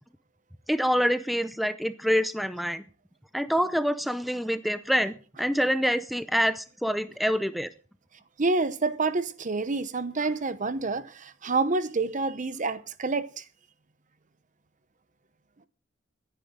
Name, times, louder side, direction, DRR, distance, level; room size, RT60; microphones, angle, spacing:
voice 1, 0.7-2.8 3.3-7.7, equal, ahead, 0.6 m, -26 dB
voice 2, 8.4-13.4, right 3 dB, 40° right, 0.9 m, -28 dB
24.5 x 10.0 x 3.8 m
head